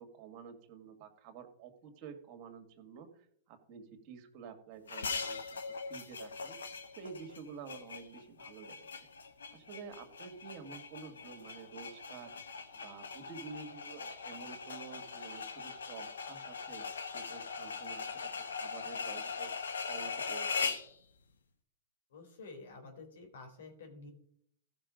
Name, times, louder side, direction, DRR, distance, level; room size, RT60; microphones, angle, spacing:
voice 1, 0.0-5.4 5.9-6.6 7.0-9.1 9.5-16.9 17.1-19.5 19.9-20.7, right 6 dB, 45° right, 6 dB, 2.1 m, -50 dB
sound 1, 4.9-20.9, left 5 dB, 90° left, 1.1 m, -41 dB
voice 2, 22.1-24.1, left 3 dB, 75° left, 4 dB, 3.4 m, -50 dB
15.0 x 5.9 x 5.1 m, 0.68 s
hypercardioid pair, 125°, 0 cm